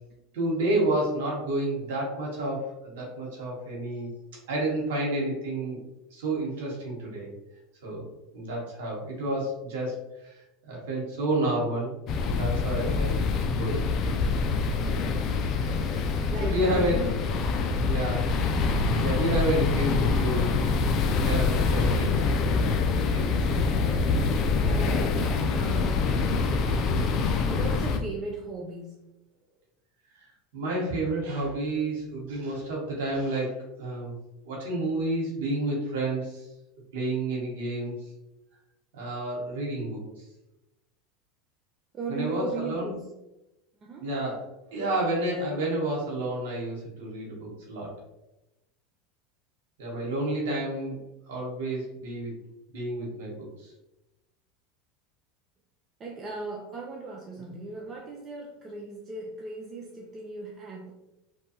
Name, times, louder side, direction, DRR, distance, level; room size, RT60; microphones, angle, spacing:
voice 1, 0.3-4.1 4.5-5.8 6.1-7.3 7.8-10.3 10.7-11.9 12.2-13.2 13.5-13.8 16.3-17.0 17.9-18.3 19.0-20.5 21.2-22.1 23.1-23.5 26.7-27.2 30.2-30.3 30.5-34.2 34.4-36.5 36.9-37.9 38.9-40.0 42.1-43.0 44.0-47.9 49.8-51.0 51.3-52.3 52.7-53.7 57.4-57.5, right 1 dB, 80° right, -3 dB, 0.9 m, -30 dB
sound 1, 12.1-28.0, left 4 dB, 50° left, 0.3 m, -25 dB
voice 2, 16.3-17.1 18.1-18.2 24.6-26.1 27.0-29.0 41.9-43.0 43.8-44.1 56.0-60.9, right 3 dB, 30° right, 0 dB, 0.4 m, -37 dB
2.7 x 2.2 x 2.8 m, 0.96 s
supercardioid pair, 105°, 0 cm